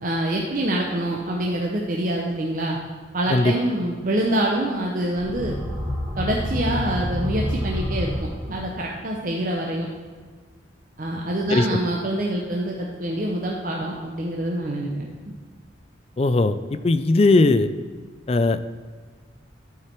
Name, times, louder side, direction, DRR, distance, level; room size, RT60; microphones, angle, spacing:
voice 1, 0.0-2.8 3.1-5.5 6.2-9.9 11.0-15.1, right 1 dB, 45° right, -1 dB, 0.8 m, -26 dB
sound 1, 5.1-8.8, left 1 dB, 5° right, 2.1 m, -28 dB
voice 2, 16.2-16.6 16.8-17.7 18.3-18.6, left 2 dB, 30° left, 12 dB, 0.3 m, -18 dB
12.0 x 4.8 x 4.5 m, 1.5 s
head